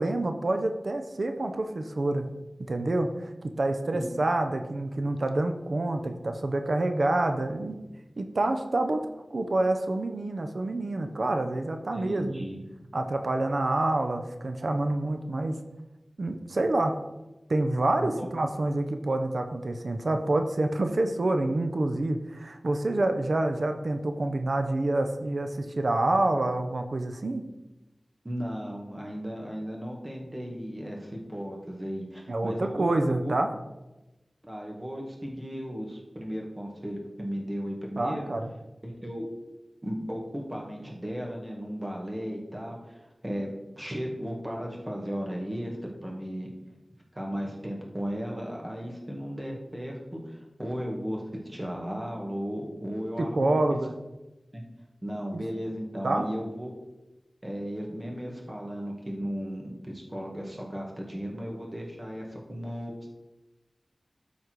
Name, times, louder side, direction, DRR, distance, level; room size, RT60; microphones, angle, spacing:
voice 1, 0.0-2.3 2.6-7.8 8.2-9.0 9.3-12.4 12.9-15.6 16.2-17.0 17.5-27.4 32.3-33.5 38.0-38.5 53.2-54.0 56.0-56.3, right 2 dB, 70° right, 6 dB, 0.8 m, -27 dB
voice 2, 11.9-12.6 18.0-18.4 28.2-33.4 34.5-38.2 38.8-39.3 39.8-45.8 46.0-46.5 47.1-51.2 51.5-53.6 54.5-54.6 55.0-56.7 57.4-63.1, equal, 25° right, -1 dB, 2.0 m, -35 dB
12.5 x 4.2 x 4.7 m, 1.0 s
wide cardioid pair, 50°, 0 cm